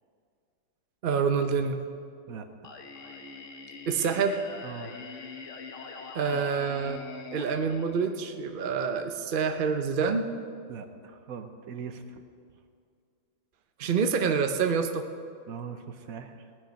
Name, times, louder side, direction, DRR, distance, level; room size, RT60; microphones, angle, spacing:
voice 1, 1.0-1.8 3.9-4.4 6.1-7.0 7.3-10.3 13.8-15.0, right 6 dB, 80° right, 6 dB, 0.4 m, -27 dB
Singing, 2.6-8.6, left 4 dB, 50° left, 1.1 m, -44 dB
voice 2, 4.6-4.9 6.3-6.4 10.7-12.0 15.5-16.4, right 6 dB, 60° right, 8 dB, 1.0 m, -40 dB
18.5 x 10.0 x 5.2 m, 2.3 s
omnidirectional pair, 2.1 m